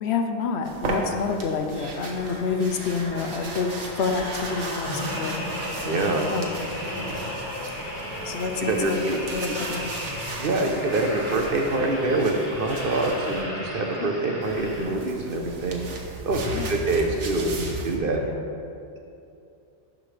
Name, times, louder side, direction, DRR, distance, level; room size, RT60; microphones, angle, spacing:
voice 1, 0.0-5.5 6.3-6.6 8.2-9.9 14.0-14.1 16.5-16.8 18.2-18.4, left 5 dB, 70° left, 5 dB, 0.9 m, -28 dB
sound 1, 0.6-13.4 14.4-18.0, right 2 dB, 90° right, 1.2 m, -37 dB
sound 2, 1.7-15.3 15.8-16.0, equal, 45° left, 1.8 m, -35 dB
voice 2, 5.8-6.2 8.6-9.2 10.3-15.8 16.3-18.2, right 2 dB, 55° right, 2 dB, 0.8 m, -25 dB
12.0 x 5.0 x 3.2 m, 2.7 s
omnidirectional pair, 1.2 m